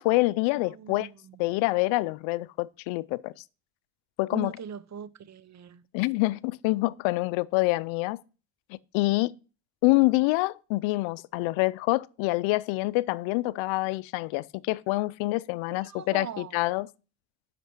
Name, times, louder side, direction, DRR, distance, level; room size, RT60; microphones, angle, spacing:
voice 1, 0.0-1.1 1.4-3.3 4.2-4.5 5.9-8.2 8.9-9.3 9.8-16.9, left 22 dB, 90° left, 0.5 m, -26 dB
voice 2, 0.5-1.4 4.3-5.8 15.7-16.5, right 7 dB, 40° right, 0.7 m, -41 dB
8.3 x 5.9 x 6.0 m
supercardioid pair, 75°, 45 cm